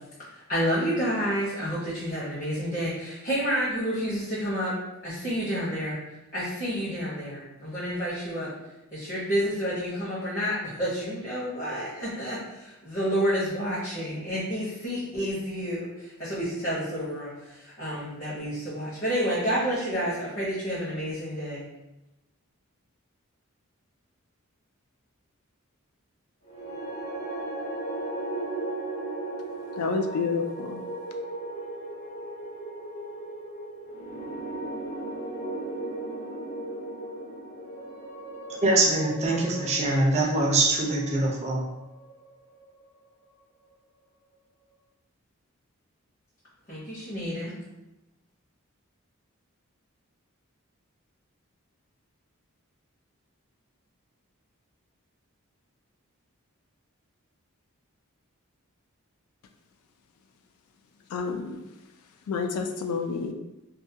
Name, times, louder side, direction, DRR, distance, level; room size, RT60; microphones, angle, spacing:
voice 1, 0.5-4.7 5.0-6.0 6.3-8.5 8.9-21.7 46.7-47.5, equal, 40° left, -10 dB, 0.8 m, -29 dB
sound 1, 26.4-42.7, right 2 dB, 55° left, 1.1 m, -36 dB
voice 2, 29.8-30.9 61.1-61.7 62.3-63.3, left 4 dB, 80° left, 6 dB, 0.3 m, -29 dB
voice 3, 38.6-41.7, right 2 dB, 30° right, -1 dB, 0.4 m, -23 dB
2.3 x 2.2 x 2.6 m, 0.96 s
head